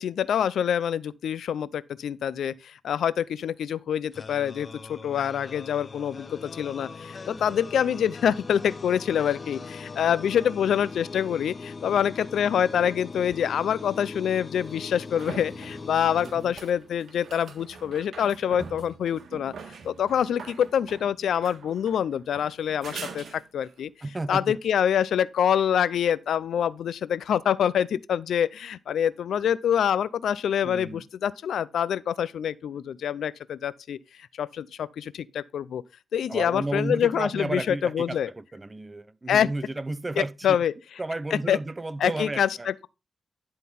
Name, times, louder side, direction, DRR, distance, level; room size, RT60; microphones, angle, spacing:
voice 1, 0.0-19.5 19.8-23.9 24.3-34.0 34.4-35.8 36.1-38.3 39.3-39.5 40.4-40.7 41.3-41.6 42.0-42.9, left 9 dB, 85° left, 0.5 m, -26 dB
sound 1, 4.1-17.1, left 4 dB, 45° left, 0.6 m, -41 dB
sound 2, 13.3-13.4 14.7-23.8 27.2-27.3, right 5 dB, 70° right, 1.7 m, -44 dB
voice 2, 16.2-16.5 24.0-24.6 30.6-31.1 36.3-40.6 41.0-42.7, right 2 dB, 25° right, 0.7 m, -33 dB
11.0 x 3.9 x 5.4 m
cardioid pair, 75°, 0 cm